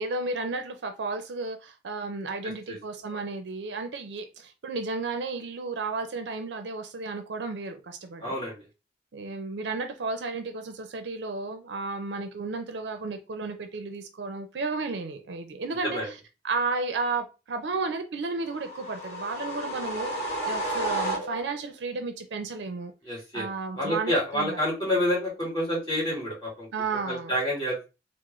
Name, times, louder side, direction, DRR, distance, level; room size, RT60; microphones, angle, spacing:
voice 1, 0.0-8.4 9.1-16.2 16.4-22.9 23.3-24.6 26.7-27.3, right 3 dB, 80° right, 0.5 m, -33 dB
voice 2, 2.4-2.8 8.2-8.6 15.8-16.1 23.0-23.5 23.8-26.7 27.1-27.8, equal, 25° left, 1.8 m, -28 dB
sound 1, 18.5-21.7, right 1 dB, 40° left, 1.4 m, -32 dB
3.6 x 2.0 x 3.0 m
head